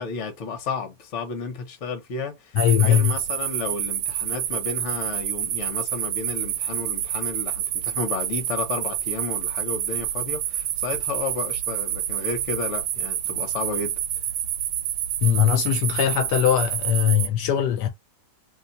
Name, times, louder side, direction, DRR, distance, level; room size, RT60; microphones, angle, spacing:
voice 1, 0.0-14.0, left 4 dB, 50° left, 1.1 m, -32 dB
voice 2, 2.5-3.2 15.2-17.9, left 10 dB, 75° left, 1.1 m, -20 dB
sound 1, 2.6-17.3, right 11 dB, 90° right, 1.2 m, -28 dB
2.9 x 2.2 x 3.9 m
omnidirectional pair, 1.8 m